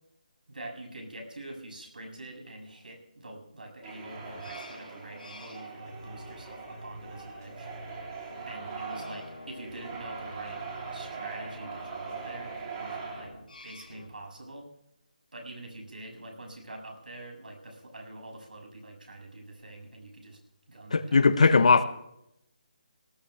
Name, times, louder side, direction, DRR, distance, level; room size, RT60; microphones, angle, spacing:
voice 1, 0.5-7.7 8.5-10.6 10.9-13.3 13.6-14.7 15.3-20.4 20.7-21.9, right 1 dB, 85° right, 7.1 m, -45 dB
sound 1, 3.8-13.3, right 5 dB, 25° right, 3.5 m, -41 dB
sound 2, 4.0-14.1, left 1 dB, 85° left, 3.9 m, -48 dB
voice 2, 20.9-21.8, left 4 dB, 55° left, 1.1 m, -19 dB
18.5 x 15.5 x 3.4 m
hypercardioid pair, 175°, 5 cm